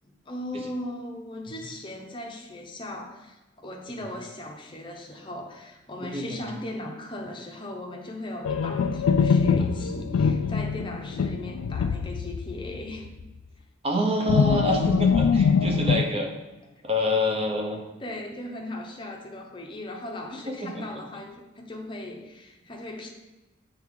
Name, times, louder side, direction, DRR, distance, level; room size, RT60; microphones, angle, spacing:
voice 1, 0.0-13.1 18.0-23.1, left 1 dB, 25° left, 1 dB, 0.7 m, -38 dB
voice 2, 6.0-6.4 13.8-16.3 16.8-17.8 20.5-20.8, equal, 30° right, 2 dB, 0.8 m, -27 dB
sound 1, 8.4-12.8 13.1-13.2 14.3-16.0, left 6 dB, 90° left, 0.3 m, -23 dB
7.7 x 3.4 x 3.7 m, 1.0 s
head